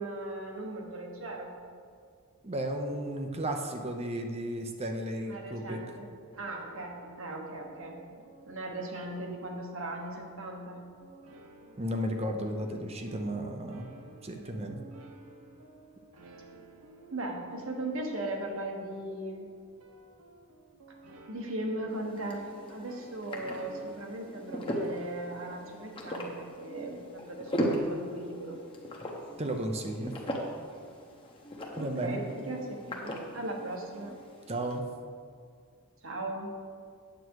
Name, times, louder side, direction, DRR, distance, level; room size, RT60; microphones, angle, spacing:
voice 1, 0.0-1.5 5.2-6.1 6.4-8.0 8.4-10.8 14.4-14.7 17.1-19.4 21.3-28.6 31.8-34.2 36.0-36.5, right 1 dB, 60° right, 1 dB, 1.4 m, -38 dB
voice 2, 2.4-5.8 11.8-13.8 14.2-14.8 29.4-30.2 31.8-32.3 34.5-34.8, right 1 dB, 30° right, 4 dB, 0.7 m, -34 dB
sound 1, 6.3-25.9, right 2 dB, 85° right, 0.9 m, -54 dB
sound 2, 21.9-34.8, equal, 25° left, 1.0 m, -38 dB
9.0 x 7.7 x 4.7 m, 2.1 s
head